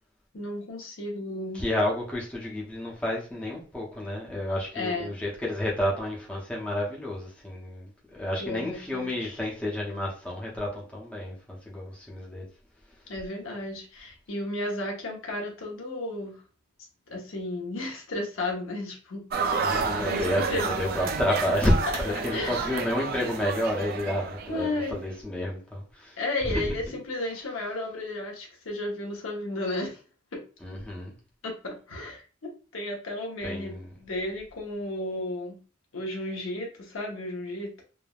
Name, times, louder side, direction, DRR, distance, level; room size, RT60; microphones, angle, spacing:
voice 1, 0.3-1.6 4.7-5.1 8.4-9.4 13.1-16.4 17.1-19.2 19.5-20.7 22.3-22.6 24.5-25.0 26.2-30.0 30.3-30.4 31.4-33.7 34.0-35.6 35.9-37.8, left 2 dB, 85° left, 0.8 m, -33 dB
voice 2, 1.5-12.4 19.6-26.2 26.4-26.7 30.6-31.1 33.4-33.9, left 1 dB, 5° left, 0.6 m, -30 dB
sound 1, 19.3-24.9, right 4 dB, 45° right, 0.3 m, -30 dB
3.3 x 2.1 x 2.3 m
head